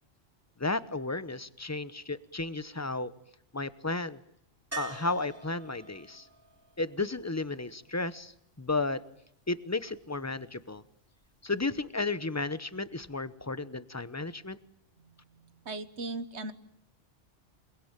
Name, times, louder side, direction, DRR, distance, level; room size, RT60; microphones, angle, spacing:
voice 1, 0.6-3.1 3.5-4.2 4.8-6.3 6.8-8.3 8.6-9.0 9.5-10.8 11.4-14.6, left 3 dB, 15° left, 15 dB, 0.9 m, -33 dB
sound 1, 4.7-8.6 11.3-11.4 11.6-11.7, right 4 dB, 10° right, 5.5 m, -46 dB
voice 2, 15.0-16.5, right 2 dB, 65° right, 12 dB, 1.7 m, -39 dB
28.0 x 20.5 x 9.0 m, 0.75 s
omnidirectional pair, 1.2 m